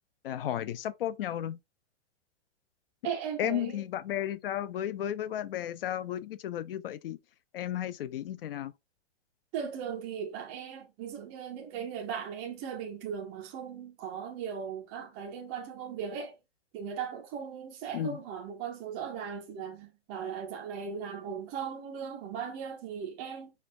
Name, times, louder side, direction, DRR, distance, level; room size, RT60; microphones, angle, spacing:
voice 1, 0.2-1.6 3.4-7.2 7.5-8.7 17.9-18.2, left 11 dB, 50° left, 0.4 m, -33 dB
voice 2, 3.0-3.8 9.5-16.3 16.7-23.5, right 7 dB, 10° right, 0.4 m, -38 dB
4.4 x 2.3 x 3.1 m
hypercardioid pair, 155°, 36 cm